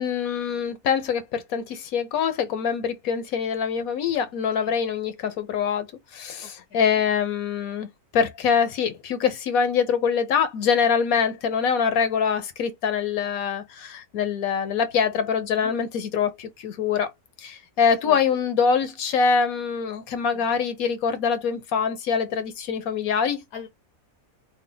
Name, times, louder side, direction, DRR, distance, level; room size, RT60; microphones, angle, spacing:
voice 1, 0.0-17.1 17.4-23.4, left 6 dB, 75° left, 1.2 m, -24 dB
voice 2, 6.4-6.8 12.2-12.5 15.6-15.8 18.0-18.2 20.3-20.6 23.5-23.7, left 6 dB, 90° left, 1.4 m, -42 dB
3.4 x 2.1 x 3.7 m
omnidirectional pair, 1.5 m